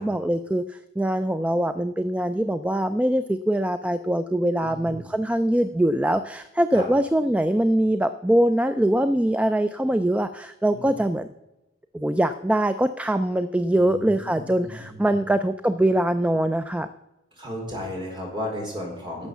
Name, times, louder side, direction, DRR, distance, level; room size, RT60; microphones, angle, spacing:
voice 1, 0.0-11.3 11.9-16.9, right 1 dB, 5° right, 10 dB, 0.3 m, -23 dB
voice 2, 4.6-5.1 6.7-6.9 10.7-10.9 13.7-15.2 17.3-19.3, left 1 dB, 25° right, -2 dB, 4.3 m, -35 dB
11.5 x 7.2 x 7.0 m, 1.0 s
head